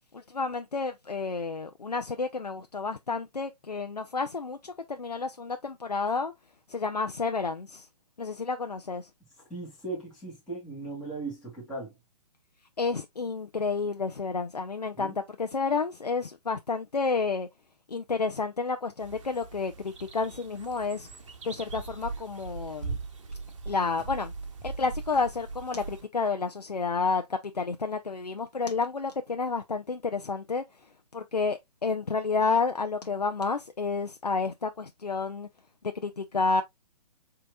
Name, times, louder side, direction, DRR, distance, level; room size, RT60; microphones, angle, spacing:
voice 1, 0.1-6.3 6.7-7.9 8.2-9.1 12.8-17.5 17.9-21.1 21.4-23.0 23.7-24.3 24.6-30.6 31.1-35.5 36.0-36.6, left 4 dB, 85° left, 0.5 m, -30 dB
voice 2, 9.5-12.0 15.0-15.2, right 3 dB, ahead, 2.1 m, -38 dB
sound 1, 19.0-26.0, right 4 dB, 50° right, 0.9 m, -40 dB
7.1 x 2.8 x 2.2 m
figure-of-eight pair, 130°, 20 cm